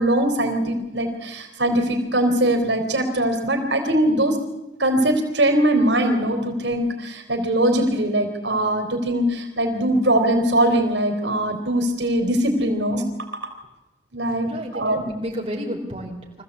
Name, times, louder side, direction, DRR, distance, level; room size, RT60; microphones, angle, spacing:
voice 1, 0.0-4.4 4.8-13.0 14.1-15.0, right 1 dB, 85° right, 4 dB, 3.5 m, -21 dB
voice 2, 14.4-16.4, equal, 35° right, -1 dB, 4.1 m, -32 dB
24.5 x 15.0 x 8.3 m, 1.0 s
head